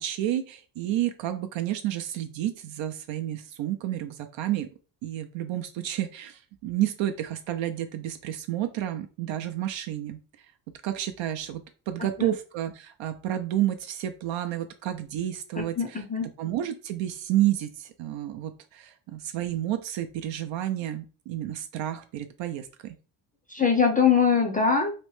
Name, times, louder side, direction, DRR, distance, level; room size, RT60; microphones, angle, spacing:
voice 1, 0.0-4.7 5.0-10.2 10.8-16.0 16.4-23.0, right 12 dB, 65° right, 7 dB, 0.5 m, -30 dB
voice 2, 15.6-16.3 23.5-24.9, left 6 dB, 20° left, 3 dB, 0.5 m, -22 dB
3.0 x 2.1 x 3.1 m, 0.35 s
cardioid pair, 80°, 48 cm